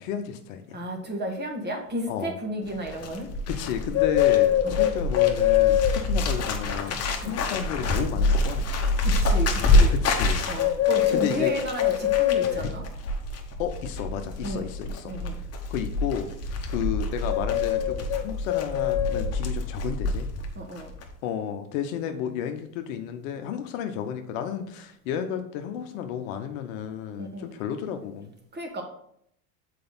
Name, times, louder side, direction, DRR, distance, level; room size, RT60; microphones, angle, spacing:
voice 1, 0.0-0.8 2.1-2.3 3.5-8.7 9.9-10.5 11.1-11.5 12.4-12.7 13.6-15.1 15.7-16.3 16.7-20.3 21.2-28.3, left 9 dB, 60° left, 7 dB, 0.9 m, -32 dB
voice 2, 0.7-3.3 4.6-4.8 7.2-7.4 9.0-9.9 10.5-12.8 14.4-14.7 15.1-15.4 20.5-20.9 27.2-27.5 28.5-28.8, equal, 20° right, 3 dB, 1.6 m, -33 dB
Bird, 2.7-20.5 20.8-21.1, left 5 dB, 35° left, 1.2 m, -24 dB
6.7 x 4.7 x 4.0 m, 0.69 s
hypercardioid pair, 90°, 46 cm